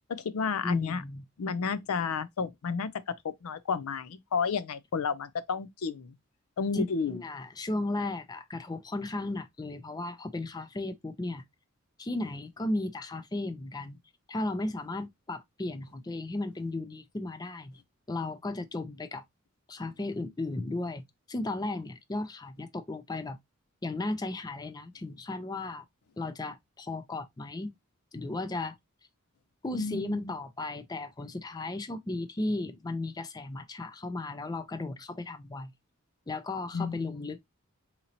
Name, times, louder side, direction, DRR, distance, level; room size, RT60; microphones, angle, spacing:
voice 1, 0.1-1.0 1.4-2.9 3.2-6.2 6.6-7.2 29.7-30.3 36.7-37.3, left 5 dB, 85° left, 0.5 m, -32 dB
voice 2, 0.6-1.3 6.7-11.4 12.0-14.0 14.3-17.7 18.1-19.2 19.7-21.0 21.3-23.4 23.8-25.8 26.2-27.7 28.1-28.8 29.6-35.7 36.3-37.4, left 2 dB, 20° left, 0.4 m, -35 dB
3.8 x 2.9 x 2.8 m
head